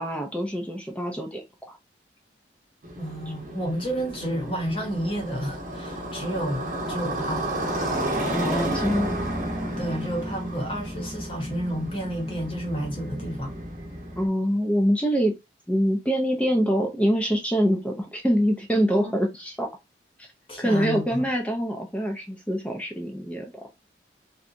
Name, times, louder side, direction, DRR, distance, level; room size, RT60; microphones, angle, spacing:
voice 1, 0.0-1.8 8.3-9.2 14.2-15.3 15.7-19.7 20.2-20.3 20.6-23.6, equal, 5° left, 0.4 m, -25 dB
Motorcycle, 2.8-14.3, right 1 dB, 45° right, 0.7 m, -31 dB
voice 2, 3.0-7.5 7.7-8.2 9.8-13.5 18.9-19.1 20.5-21.2, equal, 30° left, 0.9 m, -31 dB
2.8 x 2.2 x 2.5 m
head